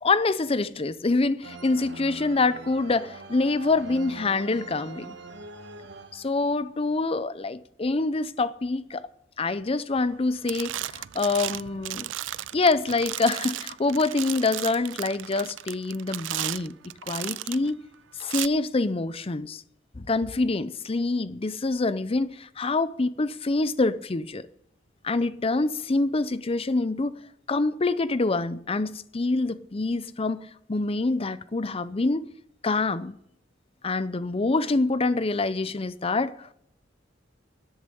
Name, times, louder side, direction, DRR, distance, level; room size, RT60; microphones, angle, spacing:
voice 1, 0.0-5.1 6.1-9.1 9.4-12.1 12.5-16.7 17.1-17.8 18.2-19.6 19.9-24.5 25.0-27.2 27.5-32.3 32.6-33.2 33.8-36.5, left 3 dB, 30° left, 0.6 m, -26 dB
sound 1, 1.4-6.7, right 3 dB, 65° right, 1.3 m, -43 dB
sound 2, 10.0-10.2 10.5-17.7 18.2-18.5, right 14 dB, 85° right, 0.4 m, -34 dB
13.0 x 7.2 x 9.8 m
head